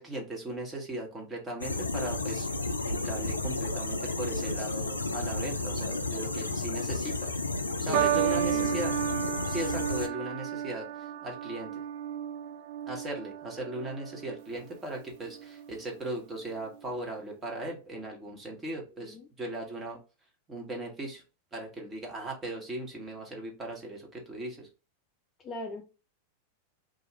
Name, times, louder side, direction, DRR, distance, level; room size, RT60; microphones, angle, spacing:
voice 1, 0.0-2.5 2.8-7.3 7.8-8.9 9.5-10.9 11.2-11.7 12.9-20.0 20.5-21.2 21.5-24.7, right 1 dB, 20° right, 1.1 m, -38 dB
sound 1, 1.6-10.1, left 2 dB, 80° left, 0.3 m, -32 dB
voice 2, 7.8-8.8 19.0-19.3 25.4-25.8, left 3 dB, 25° left, 0.5 m, -40 dB
sound 2, 7.9-14.4 15.3-15.7, right 10 dB, 50° right, 0.3 m, -32 dB
2.5 x 2.4 x 3.1 m
figure-of-eight pair, 90°, 0 cm